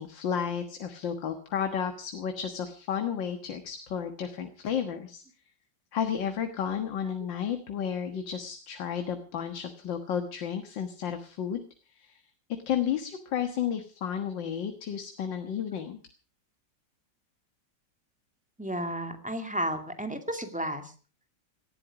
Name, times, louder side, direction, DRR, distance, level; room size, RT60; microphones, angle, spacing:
voice 1, 0.0-5.2 5.9-11.6 11.9-12.2 12.7-16.0, left 8 dB, 80° left, 7 dB, 2.2 m, -32 dB
voice 2, 18.6-20.8, right 1 dB, 5° right, 6 dB, 2.2 m, -32 dB
18.5 x 14.5 x 4.9 m, 0.38 s
omnidirectional pair, 2.0 m